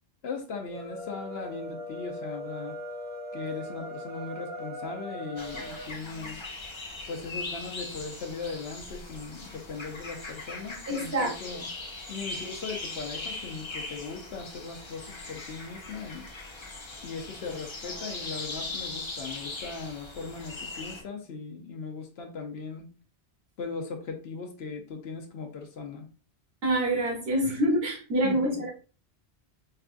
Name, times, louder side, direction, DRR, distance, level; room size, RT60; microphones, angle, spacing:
voice 1, 0.2-2.8 3.3-6.4 7.1-11.7 12.1-16.3 17.0-22.9 23.6-26.1 28.2-28.6, left 4 dB, 70° left, 3 dB, 0.9 m, -38 dB
sound 1, 0.6-5.9, left 1 dB, 85° right, 2.1 m, -39 dB
sound 2, 5.4-21.0, left 3 dB, 35° left, 0.5 m, -40 dB
voice 2, 10.9-11.6 26.6-28.7, right 1 dB, 65° right, -1 dB, 1.4 m, -26 dB
4.6 x 2.3 x 2.5 m, 0.36 s
omnidirectional pair, 1.1 m